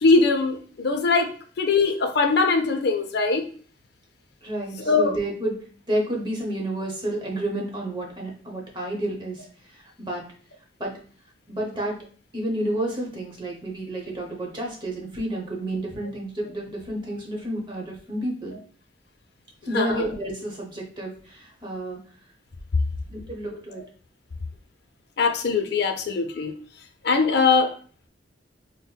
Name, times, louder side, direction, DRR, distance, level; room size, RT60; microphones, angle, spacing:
voice 1, 0.0-1.3 1.6-3.4 4.9-5.1 19.7-19.9 25.2-26.5 27.0-27.7, left 4 dB, 60° left, 5 dB, 0.5 m, -21 dB
voice 2, 4.4-10.2 10.8-11.0 11.5-12.0 12.3-18.6 19.6-22.0 23.1-23.9, right 1 dB, 25° right, -1 dB, 0.9 m, -30 dB
5.4 x 2.1 x 2.2 m, 0.42 s
head